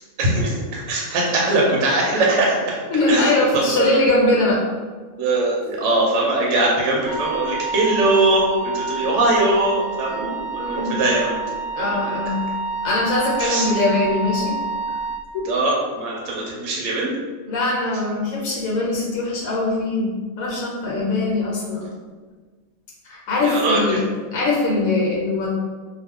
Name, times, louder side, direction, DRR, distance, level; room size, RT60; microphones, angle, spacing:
voice 1, 0.2-2.8 3.1-3.9 5.2-11.4 11.8-12.0 13.4-13.7 15.4-17.1 23.4-23.8, right 2 dB, 70° right, -3 dB, 0.9 m, -21 dB
voice 2, 2.9-4.6 10.1-10.2 10.6-11.0 11.7-12.5 12.8-14.6 15.3-15.4 17.5-21.9 23.0-24.0 24.3-25.5, left 2 dB, 75° left, -3 dB, 1.1 m, -22 dB
Wind instrument woodwind instrument, 7.1-15.2, right 4 dB, 25° right, 0.8 m, -28 dB
2.4 x 2.2 x 3.5 m, 1.4 s
omnidirectional pair, 1.5 m